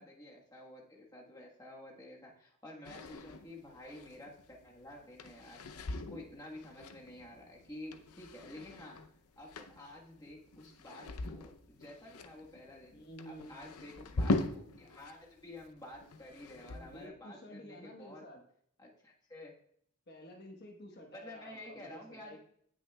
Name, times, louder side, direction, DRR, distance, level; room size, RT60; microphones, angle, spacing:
voice 1, 0.0-5.6 5.9-9.0 9.4-13.0 13.2-18.2 18.8-19.5 21.1-22.4, left 1 dB, 15° left, -2 dB, 1.3 m, -51 dB
sound 1, 2.8-15.1 15.4-17.1, left 2 dB, 90° left, 0.7 m, -41 dB
voice 2, 12.9-13.5 16.8-18.4 20.1-22.4, equal, 45° left, 2 dB, 1.2 m, -51 dB
17.5 x 6.2 x 2.3 m, 0.66 s
head